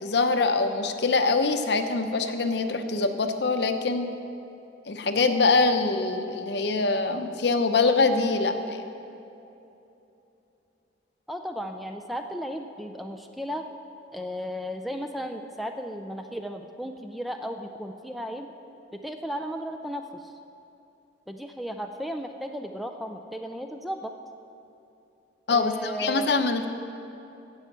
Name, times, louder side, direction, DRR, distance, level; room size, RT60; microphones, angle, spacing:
voice 1, 0.0-4.1 4.9-8.8 25.5-26.7, left 3 dB, 60° left, 7 dB, 0.7 m, -24 dB
voice 2, 11.3-13.7 14.1-18.5 18.9-20.3 21.3-24.1 25.5-26.5, equal, ahead, 5 dB, 0.4 m, -35 dB
15.5 x 5.7 x 7.3 m, 2.9 s
head